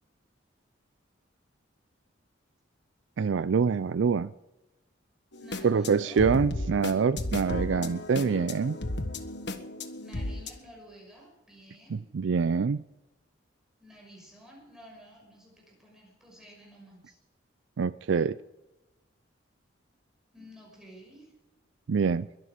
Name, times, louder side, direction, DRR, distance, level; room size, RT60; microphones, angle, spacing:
voice 1, 3.2-4.3 5.6-8.8 11.9-12.8 17.8-18.4 21.9-22.3, right 5 dB, 75° right, 15 dB, 0.4 m, -25 dB
sound 1, 5.3-10.5, left 2 dB, 60° left, 1.4 m, -35 dB
voice 2, 5.4-6.3 8.1-8.8 10.0-12.0 13.8-17.2 20.3-21.3, equal, 5° right, -2 dB, 5.9 m, -52 dB
22.0 x 11.5 x 5.1 m, 1.0 s
head